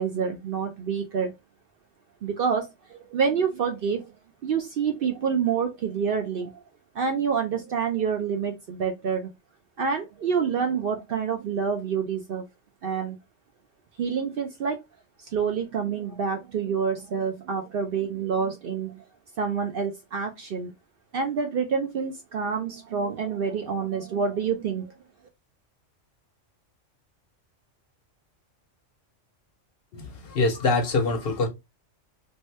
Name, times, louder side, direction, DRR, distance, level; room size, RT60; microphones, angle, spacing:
voice 1, 0.0-1.3 2.2-4.1 4.4-6.5 6.9-9.3 9.8-12.4 12.8-13.2 14.0-14.8 15.3-19.0 19.4-20.7 21.1-24.9, right 6 dB, 60° right, 0.6 m, -27 dB
voice 2, 29.9-31.5, left 3 dB, 60° left, 0.7 m, -24 dB
2.8 x 2.2 x 3.1 m
omnidirectional pair, 1.3 m